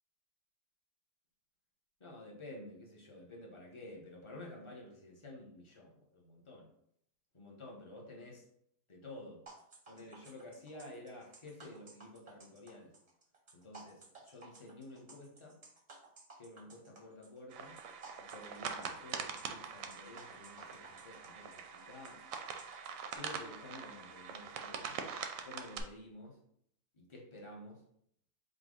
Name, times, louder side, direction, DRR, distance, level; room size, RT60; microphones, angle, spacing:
voice 1, 2.0-6.7 7.3-8.4 8.9-9.4 9.9-12.9 13.5-15.6 16.4-17.8 18.2-22.2 23.1-25.0 25.4-26.4 26.9-27.8, left 1 dB, 25° left, -1 dB, 0.6 m, -51 dB
sound 1, 9.5-23.2, right 3 dB, 35° right, 0.6 m, -56 dB
sound 2, 17.5-25.8, right 6 dB, 70° right, 0.8 m, -44 dB
5.0 x 2.3 x 3.8 m, 0.69 s
omnidirectional pair, 1.7 m